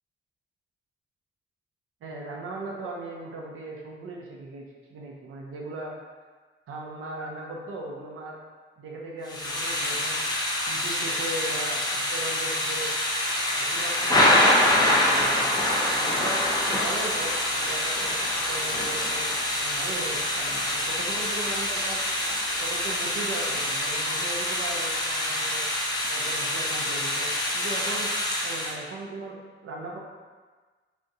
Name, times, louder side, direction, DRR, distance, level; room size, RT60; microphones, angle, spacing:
voice 1, 2.0-4.6 4.9-5.9 6.7-8.4 8.8-10.2 10.7-12.9 13.6-22.0 22.6-25.6 26.1-28.1 28.4-30.0, right 2 dB, 85° right, -1 dB, 0.6 m, -38 dB
Thunder / Rain, 9.3-28.7, left 1 dB, 20° left, 0.6 m, -26 dB
3.4 x 2.6 x 2.7 m, 1.4 s
cardioid pair, 80°, 21 cm